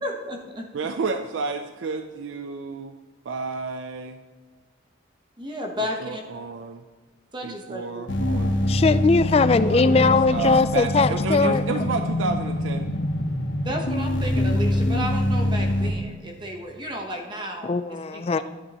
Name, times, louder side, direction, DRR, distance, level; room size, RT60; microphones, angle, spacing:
voice 1, 0.0-0.7 5.4-6.2 7.3-8.0 9.6-9.9 13.6-18.2, equal, 25° right, 1 dB, 0.9 m, -33 dB
voice 2, 0.7-2.9 3.2-4.2 6.0-6.8 7.4-8.6 9.9-12.9, right 4 dB, 85° right, 7 dB, 0.5 m, -30 dB
sound 1, 8.1-15.9, left 1 dB, 75° left, 1.1 m, -24 dB
voice 3, 8.6-11.6 17.6-18.4, left 4 dB, 30° left, 13 dB, 0.3 m, -20 dB
11.0 x 9.8 x 2.9 m, 1.4 s
head